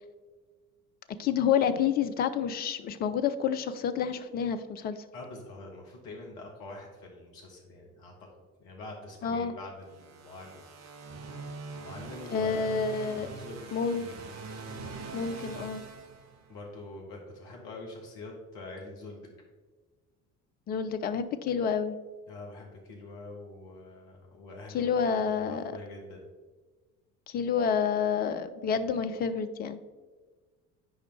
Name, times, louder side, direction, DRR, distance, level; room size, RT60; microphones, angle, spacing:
voice 1, 1.2-5.0 9.2-9.5 12.3-13.3 13.7-14.1 15.1-15.8 20.7-22.0 24.7-25.6 27.3-29.8, left 7 dB, 25° left, 10 dB, 0.4 m, -28 dB
voice 2, 5.1-8.3 8.6-10.7 11.7-14.1 16.5-19.3 22.3-26.2, left 2 dB, 50° left, 0 dB, 1.4 m, -45 dB
sound 1, 9.9-16.8, right 4 dB, 35° right, 1.0 m, -43 dB
9.5 x 5.0 x 3.3 m, 1.3 s
figure-of-eight pair, 55°, 46 cm